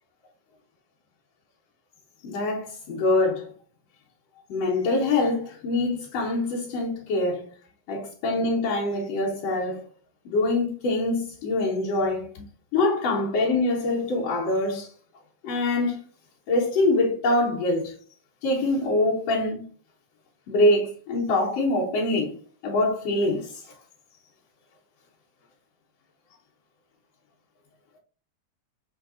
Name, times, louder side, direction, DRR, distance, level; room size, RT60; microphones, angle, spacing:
voice 1, 2.2-3.5 4.5-7.5 7.9-9.9 10.3-12.4 12.7-14.9 15.4-16.0 16.5-17.9 18.4-19.7 20.5-22.3 22.6-23.7, left 2 dB, 70° left, 1.9 m, -24 dB
5.5 x 3.4 x 2.4 m
omnidirectional pair, 3.4 m